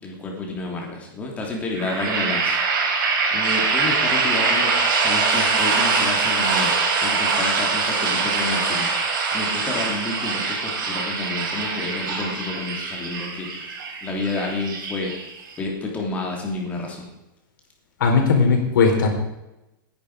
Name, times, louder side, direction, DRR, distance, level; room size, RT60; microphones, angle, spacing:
voice 1, 0.0-2.6 3.3-6.8 7.0-8.9 9.3-15.3 15.6-17.1, left 3 dB, 15° left, 0 dB, 3.2 m, -30 dB
sound 1, 1.7-15.6, right 4 dB, 70° right, 5.5 m, -23 dB
voice 2, 18.0-19.1, left 4 dB, 65° left, 2 dB, 4.7 m, -17 dB
18.5 x 11.0 x 5.0 m, 0.95 s
supercardioid pair, 170°, 11 cm